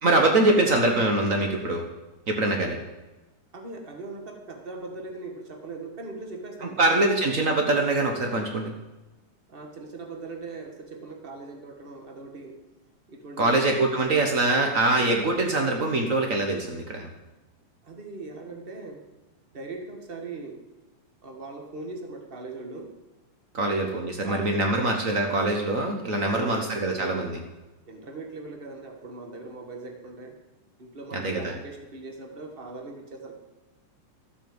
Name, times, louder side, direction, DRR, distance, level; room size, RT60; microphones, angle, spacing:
voice 1, 0.0-1.8 2.3-2.8 6.8-8.7 13.4-17.1 23.5-27.4 31.1-31.5, right 2 dB, 75° right, 2 dB, 0.7 m, -23 dB
voice 2, 3.5-7.1 9.5-12.6 13.1-13.8 17.8-19.0 19.5-20.6 21.2-22.9 24.2-24.9 26.1-27.3 27.8-30.4 30.8-33.3, right 3 dB, 25° right, 3 dB, 1.2 m, -40 dB
13.0 x 8.5 x 7.9 m, 1.1 s
omnidirectional pair, 3.6 m